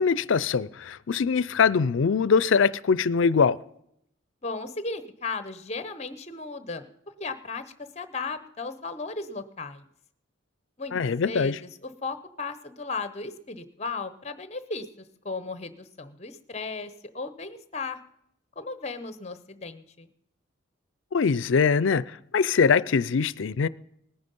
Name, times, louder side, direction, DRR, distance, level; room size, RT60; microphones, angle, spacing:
voice 1, 0.0-3.6 10.9-11.6 21.1-22.0 22.3-23.7, left 5 dB, 75° left, 0.4 m, -22 dB
voice 2, 4.4-6.9 7.2-7.6 7.9-9.8 10.8-14.9 15.2-18.0 18.6-20.1, left 3 dB, 30° left, 0.8 m, -35 dB
19.0 x 9.6 x 5.4 m
head